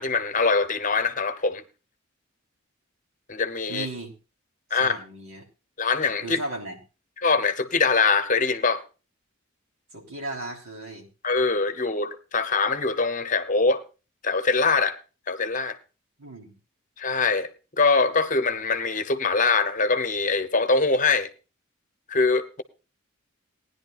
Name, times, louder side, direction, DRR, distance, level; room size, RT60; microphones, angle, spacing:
voice 1, 0.0-1.6 3.3-3.9 4.7-5.0 5.8-6.4 7.2-8.8 11.2-13.8 14.2-15.0 15.3-15.8 17.0-17.5 17.8-21.3 22.1-22.6, left 4 dB, 40° left, 0.9 m, -23 dB
voice 2, 3.7-4.1 4.7-5.5 6.2-6.8 9.9-11.1 16.2-16.6, right 2 dB, 80° right, 3.3 m, -36 dB
19.0 x 10.5 x 2.4 m
head